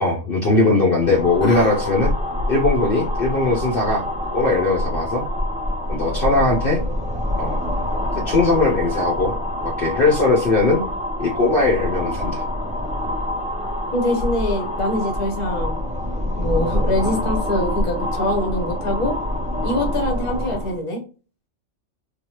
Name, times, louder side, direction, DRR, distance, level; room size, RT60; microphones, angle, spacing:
voice 1, 0.0-2.1 2.5-4.1 4.3-5.2 5.9-6.8 7.4-7.6 8.3-9.4 9.6-10.8 11.2-12.4, left 2 dB, 50° left, -2 dB, 0.9 m, -19 dB
sound 1, 0.9-20.8, left 1 dB, 10° right, 0.3 m, -26 dB
voice 2, 1.4-1.8 13.9-15.7 16.4-19.2 19.6-21.0, left 1 dB, 30° left, 2 dB, 0.9 m, -24 dB
3.3 x 2.2 x 2.9 m, 0.34 s
omnidirectional pair, 1.3 m